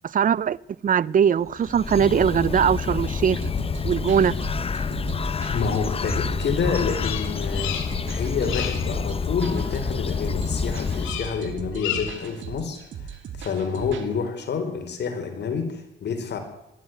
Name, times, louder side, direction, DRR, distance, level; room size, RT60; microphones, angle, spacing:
voice 1, 0.0-0.6 0.8-3.4 3.8-4.4, right 8 dB, 45° right, 0.7 m, -21 dB
Bird, 1.5-11.5, left 5 dB, 30° left, 0.8 m, -28 dB
sound 1, 3.4-14.1, right 7 dB, 70° right, 2.8 m, -38 dB
voice 2, 5.5-7.7 8.1-16.4, left 5 dB, 60° left, 4.3 m, -28 dB
Bird vocalization bird call bird song, 6.9-8.1 8.4-8.9 11.0-11.4 11.7-12.3, left 10 dB, 85° left, 3.0 m, -32 dB
21.0 x 13.0 x 9.3 m
cardioid pair, 90°, 20 cm